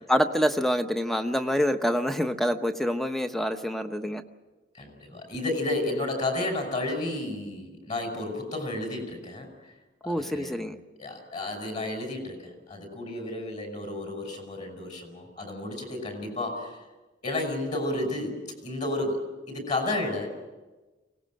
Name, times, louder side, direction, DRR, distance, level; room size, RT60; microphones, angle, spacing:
voice 1, 0.1-4.2 10.1-10.8, equal, ahead, 7 dB, 1.0 m, -26 dB
voice 2, 4.7-9.5 10.0-10.6 11.0-16.8 17.2-19.2 19.5-20.3, left 2 dB, 40° left, 4 dB, 5.8 m, -32 dB
24.5 x 18.5 x 7.7 m, 1.2 s
head